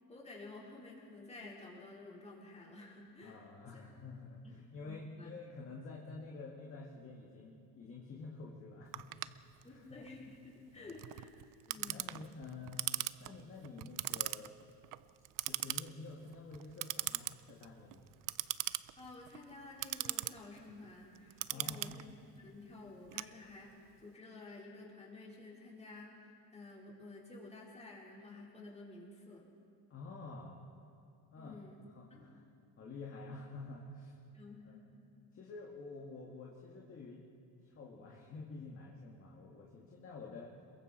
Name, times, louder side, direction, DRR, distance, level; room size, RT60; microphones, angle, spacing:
voice 1, 0.1-3.5 4.4-5.3 9.6-11.3 11.7-12.0 19.0-29.5 31.3-31.8 32.1-32.2 33.2-33.3 34.3-34.9, left 2 dB, 15° left, -4 dB, 4.4 m, -52 dB
voice 2, 3.2-9.8 10.7-10.9 11.8-14.6 15.4-18.1 21.5-21.9 29.9-30.6 31.3-31.6 31.9-32.4 32.8-34.2 34.6-34.8 35.3-37.3 37.6-40.5, left 3 dB, 30° left, -2 dB, 2.0 m, -49 dB
Clock, 8.9-23.9, right 16 dB, 50° right, 0.5 m, -41 dB
27.0 x 22.5 x 4.4 m, 2.8 s
cardioid pair, 145°, 41 cm